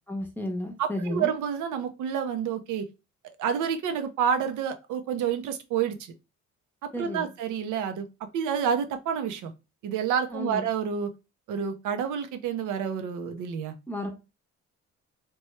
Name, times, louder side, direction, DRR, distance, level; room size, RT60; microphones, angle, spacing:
voice 1, 0.1-1.3 6.9-7.3 10.3-10.7 13.9-14.1, left 1 dB, 5° left, 0.7 m, -32 dB
voice 2, 0.8-2.9 3.4-6.1 6.8-8.1 8.3-9.5 9.8-11.1 11.5-13.7, right 7 dB, 80° right, 0.6 m, -29 dB
3.0 x 2.2 x 3.1 m
cardioid pair, 90°, 30 cm